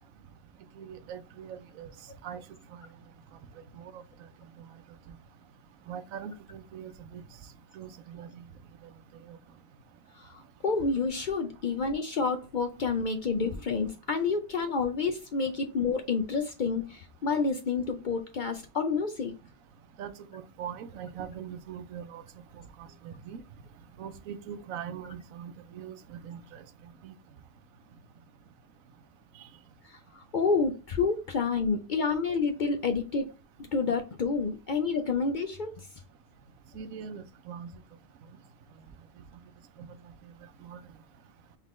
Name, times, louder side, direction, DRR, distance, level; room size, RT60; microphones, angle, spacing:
voice 1, 0.8-1.9 2.2-2.4 2.7-2.8 3.8-4.0 5.9-7.2 7.7-8.4 9.3-9.4 20.0-22.2 23.0-23.4 24.0-26.6 27.0-27.1 36.7-37.7 39.8-39.9 40.6-40.8, right 8 dB, 90° right, 1.0 m, -41 dB
voice 2, 10.1-19.3 29.8-33.3 33.7-35.9, left 4 dB, 60° left, 0.5 m, -29 dB
3.8 x 3.6 x 3.1 m
omnidirectional pair, 1.4 m